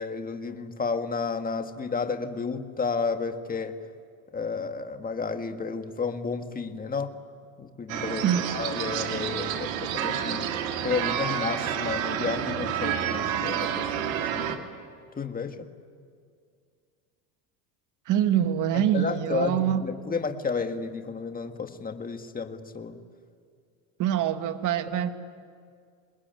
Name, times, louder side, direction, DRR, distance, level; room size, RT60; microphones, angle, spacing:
voice 1, 0.0-3.8 4.3-7.1 7.6-10.5 10.8-14.6 15.2-15.6 18.7-23.0, left 5 dB, 20° left, 6 dB, 1.9 m, -32 dB
sound 1, 7.9-14.6, right 9 dB, 85° right, 2.3 m, -29 dB
voice 2, 18.1-19.9 24.0-25.1, right 10 dB, 50° right, 8 dB, 1.7 m, -24 dB
27.0 x 20.5 x 9.2 m, 2.2 s
supercardioid pair, 110°, 40 cm